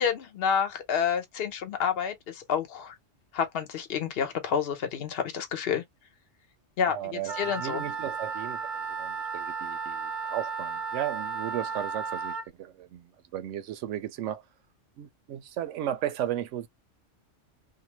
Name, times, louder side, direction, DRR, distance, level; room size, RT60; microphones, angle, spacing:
voice 1, 0.0-2.9 3.3-5.8 6.8-7.8, left 7 dB, 60° left, 0.9 m, -29 dB
voice 2, 6.9-8.6 9.0-13.1 13.3-14.4 15.0-16.7, right 11 dB, 80° right, 0.9 m, -35 dB
Wind instrument woodwind instrument, 7.2-12.4, right 5 dB, 50° right, 0.8 m, -34 dB
2.7 x 2.1 x 2.8 m
omnidirectional pair, 1.2 m